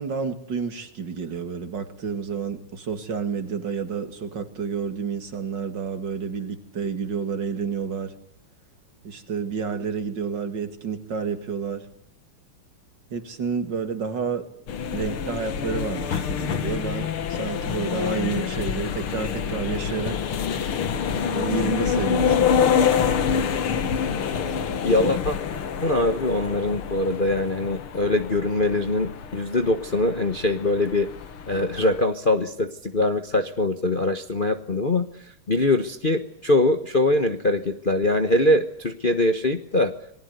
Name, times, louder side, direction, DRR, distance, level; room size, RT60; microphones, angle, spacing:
voice 1, 0.0-8.1 9.0-11.9 13.1-14.5 14.9-20.2 21.3-22.8, right 6 dB, 55° right, 8 dB, 2.9 m, -30 dB
sound 1, 14.7-32.0, left 7 dB, 85° left, 2.4 m, -26 dB
voice 2, 24.8-25.4 25.8-31.1 31.5-35.1 35.5-39.9, left 2 dB, 30° left, 7 dB, 1.1 m, -22 dB
27.5 x 20.0 x 8.1 m, 0.71 s
omnidirectional pair, 2.3 m